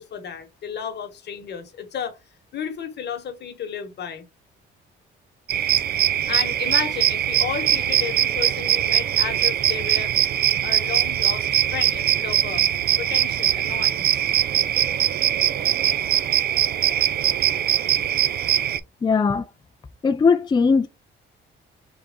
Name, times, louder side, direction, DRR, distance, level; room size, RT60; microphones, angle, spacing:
voice 1, 0.0-2.2 2.5-4.2 6.3-10.1 10.6-12.7 13.0-14.2, left 7 dB, 60° left, 1.2 m, -32 dB
sound 1, 5.5-18.8, right 11 dB, 55° right, 0.4 m, -21 dB
voice 2, 19.0-19.4 20.0-20.9, left 5 dB, 20° left, 0.4 m, -19 dB
3.6 x 3.0 x 3.6 m
cardioid pair, 90°, 20 cm